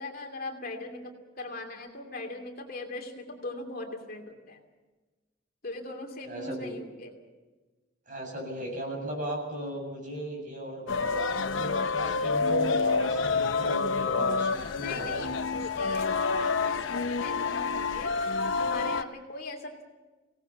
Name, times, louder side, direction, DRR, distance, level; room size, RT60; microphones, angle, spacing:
voice 1, 0.0-4.6 5.6-7.1 14.7-18.1 18.6-19.8, left 2 dB, 50° left, 3 dB, 2.7 m, -40 dB
voice 2, 6.2-6.8 8.1-15.2, right 1 dB, 45° right, 0 dB, 7.8 m, -36 dB
sound 1, 10.9-19.0, left 4 dB, 85° left, 0.8 m, -28 dB
24.5 x 18.0 x 7.3 m, 1.2 s
head